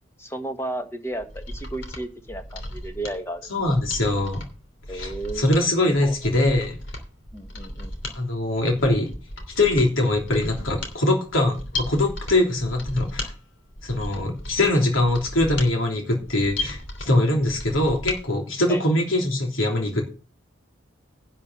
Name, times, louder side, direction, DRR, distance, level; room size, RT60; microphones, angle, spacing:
voice 1, 0.2-3.5 4.9-5.6 6.0-6.2 7.3-7.9 18.7-18.8, right 1 dB, 15° left, 6 dB, 1.4 m, -33 dB
Mechanisms, 1.1-18.2 18.5-18.6, left 1 dB, 75° left, 3.1 m, -36 dB
voice 2, 3.5-4.4 4.9-6.8 8.1-9.1 9.6-13.3 13.8-20.0, left 1 dB, 90° left, 2 dB, 3.1 m, -22 dB
11.0 x 5.6 x 7.4 m, 0.33 s
head